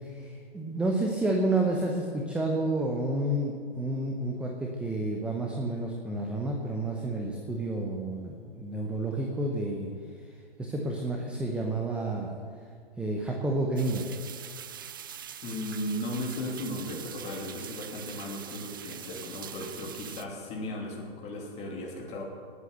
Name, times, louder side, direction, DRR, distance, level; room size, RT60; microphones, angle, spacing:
voice 1, 0.0-9.9 10.6-12.3 13.0-14.1, right 2 dB, 5° right, 0 dB, 0.8 m, -30 dB
sound 1, 13.8-20.2, right 9 dB, 25° right, 0.3 m, -43 dB
voice 2, 15.4-22.2, left 1 dB, 20° left, -2 dB, 3.0 m, -36 dB
18.5 x 8.4 x 6.7 m, 2.1 s
figure-of-eight pair, 125°, 31 cm